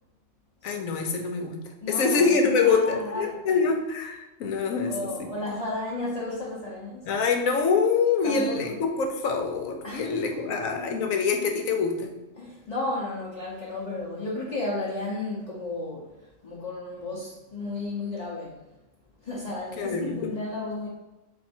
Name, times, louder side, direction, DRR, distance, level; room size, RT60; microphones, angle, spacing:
voice 1, 0.6-5.3 7.1-12.2 19.8-20.2, left 5 dB, 80° left, 4 dB, 1.1 m, -25 dB
voice 2, 1.8-3.6 4.8-7.1 8.2-8.7 9.8-10.4 12.4-18.7 19.2-20.9, left 2 dB, 35° left, -6 dB, 0.8 m, -33 dB
4.3 x 2.6 x 4.3 m, 1.1 s
omnidirectional pair, 1.4 m